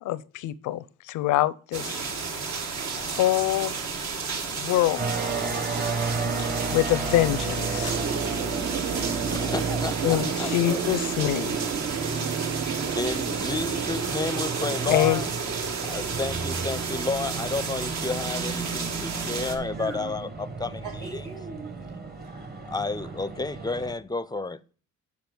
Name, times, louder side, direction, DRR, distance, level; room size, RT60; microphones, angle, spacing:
voice 1, 0.0-2.1 3.0-3.7 4.5-5.2 6.7-7.9 10.0-11.6 14.9-15.2, left 14 dB, 85° left, 0.5 m, -25 dB
sound 1, 1.7-19.6, right 5 dB, 65° right, 1.3 m, -32 dB
sound 2, 5.0-23.9, right 4 dB, 30° right, 1.2 m, -33 dB
sound 3, 7.7-20.1, right 8 dB, 50° right, 0.5 m, -34 dB
voice 2, 9.3-10.9 11.4-11.5 13.0-15.3 15.8-21.2 22.7-24.6, left 3 dB, 15° left, 0.4 m, -31 dB
voice 3, 19.7-20.1 20.8-22.3, right 4 dB, 85° right, 3.5 m, -41 dB
7.1 x 5.0 x 5.9 m
cardioid pair, 90°, 30 cm